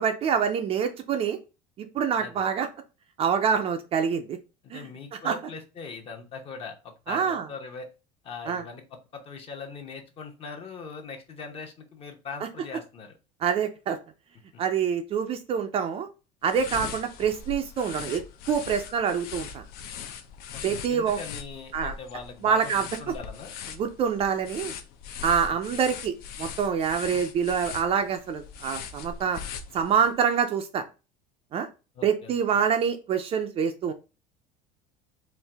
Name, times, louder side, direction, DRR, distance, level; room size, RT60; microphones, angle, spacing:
voice 1, 0.0-1.4 1.8-2.7 3.2-4.4 4.7-4.9 5.2-5.3 7.1-7.4 8.5-8.6 13.4-14.0 14.6-16.1 16.4-18.2 18.5-19.6 20.6-21.2 21.7-21.9 22.4-22.8 23.8-24.8 25.2-29.4 29.7-30.8 31.5-31.7 32.0-33.9, right 7 dB, 30° right, 6 dB, 0.4 m, -26 dB
voice 2, 4.6-7.9 8.2-13.2 14.5-14.6 20.5-20.6 20.9-23.5 25.4-25.5 31.9-32.6, left 5 dB, 30° left, 4 dB, 0.9 m, -41 dB
sound 1, 16.4-30.1, left 7 dB, 55° left, 0.6 m, -40 dB
4.5 x 2.5 x 3.4 m, 0.30 s
cardioid pair, 155°, 19 cm